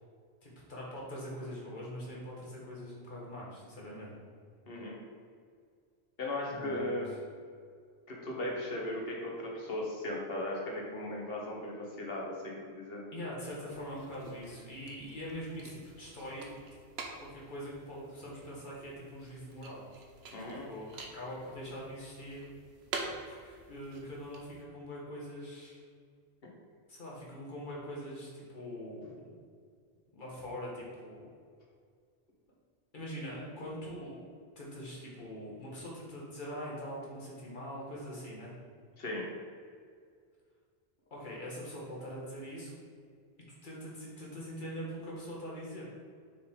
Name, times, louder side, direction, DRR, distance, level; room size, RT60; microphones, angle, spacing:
voice 1, 0.4-4.1 6.4-7.0 13.1-16.6 17.2-19.8 20.7-22.5 23.3-25.8 26.9-29.2 30.1-31.2 32.9-34.2 34.6-38.5 41.1-42.7 43.5-45.8, equal, 50° left, -5 dB, 1.7 m, -43 dB
voice 2, 4.7-5.0 6.2-7.1 8.1-13.0 20.3-20.7 39.0-39.3, left 1 dB, 65° left, -2 dB, 1.3 m, -37 dB
sound 1, 13.6-24.6, right 3 dB, 80° right, 1.0 m, -47 dB
6.0 x 4.5 x 3.7 m, 2.1 s
omnidirectional pair, 1.0 m